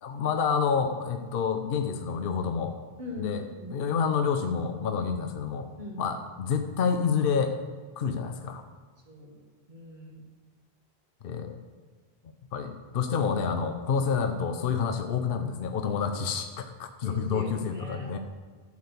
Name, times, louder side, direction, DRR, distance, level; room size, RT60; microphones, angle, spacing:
voice 1, 0.0-2.7 3.2-3.4 3.7-5.7 6.0-7.6 8.0-8.6 11.2-11.6 12.5-18.2, left 6 dB, 60° left, 6 dB, 0.9 m, -28 dB
voice 2, 3.0-3.7 5.8-6.0 9.1-9.4 9.7-10.3 17.0-18.2, left 2 dB, 45° right, -1 dB, 1.9 m, -41 dB
11.5 x 4.8 x 6.7 m, 1.5 s
omnidirectional pair, 1.1 m